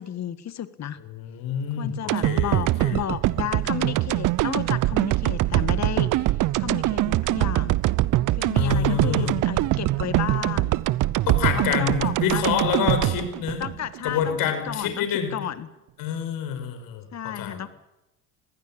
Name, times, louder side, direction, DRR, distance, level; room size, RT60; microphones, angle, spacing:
voice 1, 0.0-1.0 1.8-6.3 6.6-7.8 8.4-10.8 11.5-12.4 13.6-14.4 14.7-15.7 17.1-17.7, left 10 dB, 45° left, 12 dB, 1.8 m, -33 dB
voice 2, 1.1-3.0 8.5-9.3 11.3-13.6 14.0-15.3 16.0-17.7, left 8 dB, 65° left, 7 dB, 5.3 m, -27 dB
sound 1, 2.1-14.3 14.7-14.8, right 17 dB, 55° right, 0.8 m, -23 dB
22.5 x 16.0 x 8.7 m, 0.93 s
supercardioid pair, 80°, 37 cm